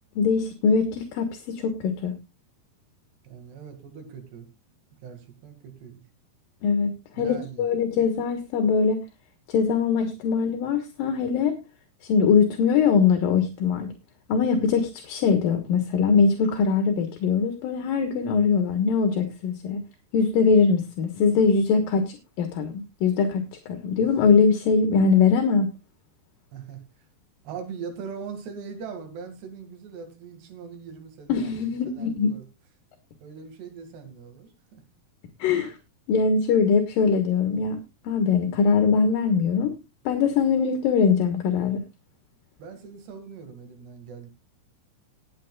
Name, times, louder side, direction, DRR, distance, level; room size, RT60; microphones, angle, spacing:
voice 1, 0.2-2.1 6.6-9.0 9.5-11.6 12.0-13.9 14.3-19.8 20.1-25.7 31.3-32.4 35.4-35.8 36.1-39.7 40.1-41.8, left 5 dB, 65° left, 6 dB, 2.8 m, -22 dB
voice 2, 3.2-4.5 5.0-6.0 7.1-7.7 24.0-24.1 26.5-26.8 27.4-31.5 31.9-32.5 33.2-34.8 42.6-44.3, right 6 dB, 80° right, 6 dB, 4.4 m, -41 dB
19.5 x 8.9 x 2.4 m, 0.25 s
omnidirectional pair, 4.8 m